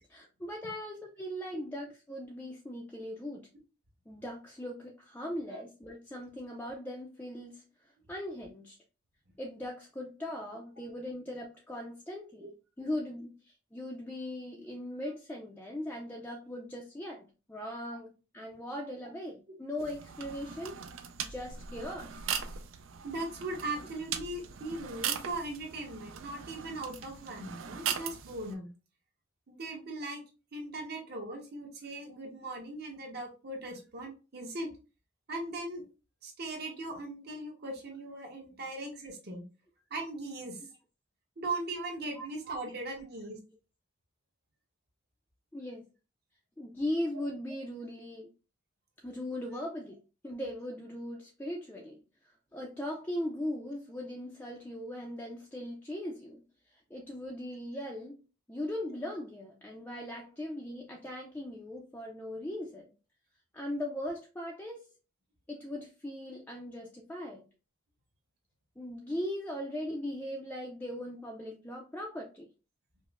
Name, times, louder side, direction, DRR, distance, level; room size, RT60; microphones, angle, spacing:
voice 1, 0.1-3.5 4.1-8.8 9.4-12.5 12.8-20.8 21.2-22.3 42.2-42.3 45.5-45.8 46.6-48.3 49.0-50.0 50.2-52.0 52.5-56.4 56.7-58.2 58.5-62.9 63.5-64.9 65.5-67.4 68.8-72.5, left 1 dB, 10° left, 0 dB, 0.3 m, -39 dB
sound 1, 19.8-28.5, right 8 dB, 80° right, 0.4 m, -39 dB
voice 2, 23.0-28.7 29.5-30.2 30.5-34.7 35.3-35.8 36.2-39.4 39.9-40.6 41.4-43.4, right 2 dB, 55° right, 1 dB, 1.0 m, -39 dB
5.0 x 2.0 x 2.4 m, 0.33 s
head